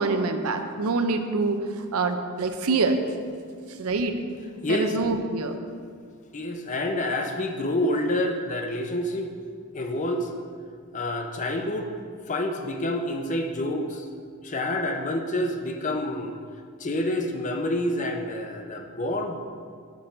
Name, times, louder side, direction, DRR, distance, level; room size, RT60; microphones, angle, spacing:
voice 1, 0.0-1.6 1.9-3.0 3.8-4.2 4.7-5.6, right 3 dB, 75° right, 7 dB, 0.6 m, -25 dB
voice 2, 4.6-5.0 6.3-9.3 9.7-10.3 10.9-11.9 12.3-14.1 14.4-16.4 16.8-19.4, left 1 dB, 35° left, 4 dB, 0.6 m, -28 dB
6.1 x 5.8 x 5.1 m, 2.1 s
head